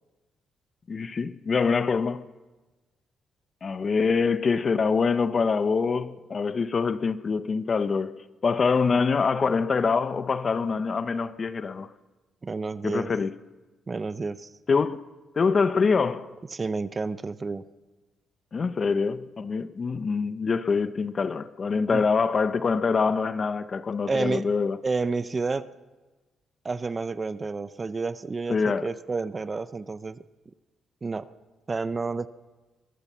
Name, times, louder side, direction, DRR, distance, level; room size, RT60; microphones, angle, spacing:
voice 1, 0.9-2.3 3.6-11.9 12.8-13.3 14.7-15.0 15.4-16.3 18.5-24.8 28.5-28.9, left 5 dB, 35° left, 0.7 m, -25 dB
voice 2, 12.4-13.1 13.9-14.5 16.5-17.6 21.9-22.0 24.1-24.4 24.8-25.7 26.6-30.2 31.0-31.3 31.7-32.3, right 4 dB, 25° right, 0.6 m, -30 dB
22.5 x 18.0 x 7.2 m
cardioid pair, 140°, 0 cm